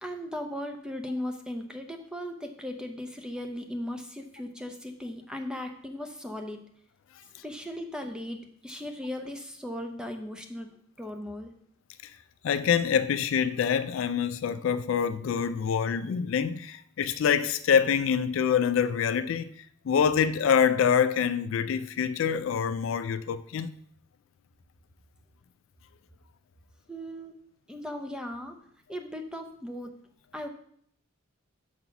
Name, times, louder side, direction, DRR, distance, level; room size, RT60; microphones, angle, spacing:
voice 1, 0.0-6.6 7.4-10.7 11.0-11.5 26.9-27.4 27.7-28.6 28.9-29.9 30.3-30.5, left 1 dB, 5° right, 0.6 m, -37 dB
voice 2, 12.4-19.5 19.9-23.7, left 7 dB, 65° left, 0.3 m, -25 dB
6.9 x 4.0 x 5.9 m
head